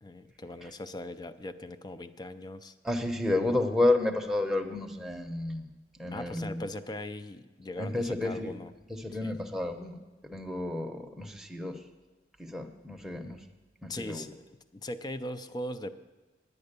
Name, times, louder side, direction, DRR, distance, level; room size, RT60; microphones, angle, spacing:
voice 1, 0.0-2.7 6.1-8.7 9.2-9.3 13.9-14.4 14.7-15.9, left 1 dB, 20° left, 11 dB, 0.4 m, -39 dB
voice 2, 2.8-5.7 5.9-6.6 7.8-8.5 8.9-11.8 12.4-13.4 13.8-14.3, left 2 dB, ahead, 2 dB, 0.8 m, -31 dB
9.8 x 9.4 x 6.7 m, 1.2 s
head